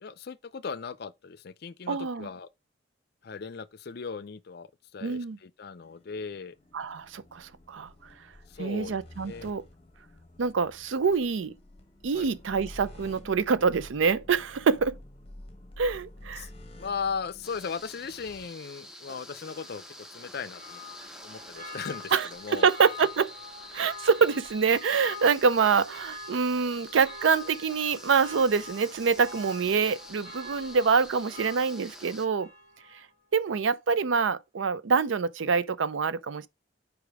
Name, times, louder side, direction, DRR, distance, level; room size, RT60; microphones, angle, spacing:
voice 1, 0.0-2.5 3.2-6.6 8.5-9.5 12.1-12.3 16.4-16.5 16.8-20.8 21.2-22.7, left 5 dB, 55° left, 0.5 m, -38 dB
voice 2, 1.9-2.3 5.0-5.4 6.7-7.9 8.6-9.6 10.4-11.5 12.0-15.0 15.8-16.5 22.1-23.3 23.7-32.5 33.3-36.5, right 5 dB, 75° right, 0.5 m, -25 dB
sound 1, 5.8-18.5, left 1 dB, 30° left, 1.0 m, -50 dB
sound 2, 17.4-32.3, left 1 dB, 5° right, 0.8 m, -47 dB
Church bell, 19.4-33.1 33.5-33.6, left 2 dB, 50° right, 4.3 m, -45 dB
5.0 x 4.8 x 4.7 m
head